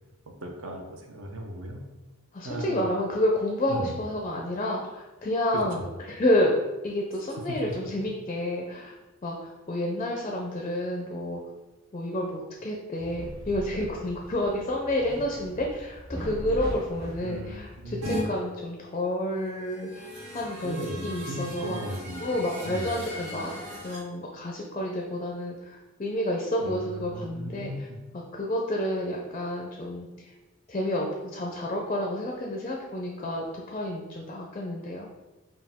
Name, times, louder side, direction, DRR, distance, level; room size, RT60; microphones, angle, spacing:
voice 1, 0.4-1.8 2.4-2.9 3.7-4.0 5.5-5.9 7.5-7.6 17.2-18.0 20.6-22.9 26.6-28.0, right 1 dB, 65° right, 2 dB, 0.6 m, -37 dB
voice 2, 2.3-6.5 6.8-8.9 9.2-11.4 11.9-20.1 20.3-21.8 22.2-27.9 28.1-30.3 30.7-35.1, left 1 dB, 30° left, -1 dB, 0.4 m, -30 dB
sound 1, 13.0-18.1, equal, 10° right, 0.7 m, -40 dB
sound 2, 18.0-18.2 19.6-24.0, equal, 85° right, 1.5 m, -38 dB
4.7 x 2.3 x 3.5 m, 1.1 s
head